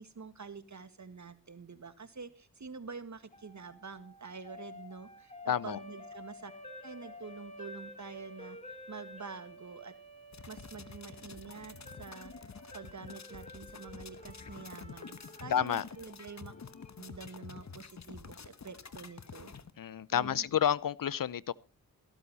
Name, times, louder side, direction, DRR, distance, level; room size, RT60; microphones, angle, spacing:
voice 1, 0.0-6.5 6.8-9.9 10.5-12.3 12.7-16.5 17.0-19.5 20.1-20.5, right 5 dB, 55° right, 1.8 m, -47 dB
sound 1, 3.3-17.4, left 1 dB, 20° left, 3.9 m, -51 dB
voice 2, 5.5-5.8 15.5-15.8 19.8-21.5, left 9 dB, 70° left, 0.6 m, -30 dB
sound 2, 10.3-19.7, left 5 dB, 50° left, 1.2 m, -49 dB
14.0 x 13.0 x 4.1 m
cardioid pair, 45°, 35 cm